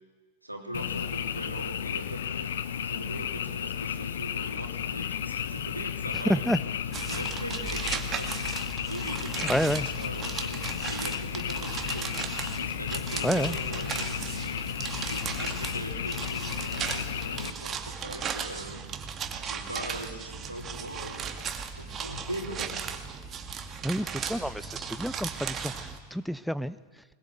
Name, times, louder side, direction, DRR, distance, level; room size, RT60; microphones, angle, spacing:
voice 1, 0.4-6.7 7.1-8.5 8.9-12.2 12.6-14.6 15.1-18.8 19.3-21.3 21.7-22.7, right 1 dB, 85° right, 3.1 m, -41 dB
Frog, 0.7-17.5, left 9 dB, 60° left, 1.0 m, -33 dB
voice 2, 6.1-6.6 9.4-9.9 13.2-13.6 23.8-27.0, equal, ahead, 0.6 m, -29 dB
sound 1, 6.9-26.0, right 6 dB, 25° right, 2.1 m, -36 dB
22.0 x 21.0 x 7.9 m
figure-of-eight pair, 90°, 0 cm